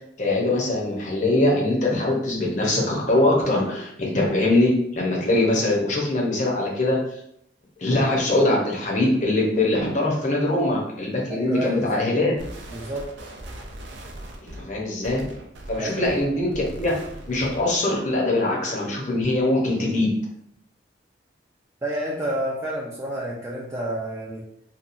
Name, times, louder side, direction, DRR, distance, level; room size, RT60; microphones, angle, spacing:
voice 1, 0.2-7.0 7.8-12.3 14.4-15.2 15.7-16.9 17.3-20.1, left 2 dB, 45° left, -2 dB, 0.7 m, -22 dB
voice 2, 11.3-12.0 12.7-13.1 15.8-16.2 21.8-24.4, right 1 dB, 15° right, -5 dB, 0.4 m, -29 dB
sound 1, 12.4-17.8, right 1 dB, 85° right, 0.5 m, -40 dB
2.8 x 2.3 x 2.5 m, 0.73 s
head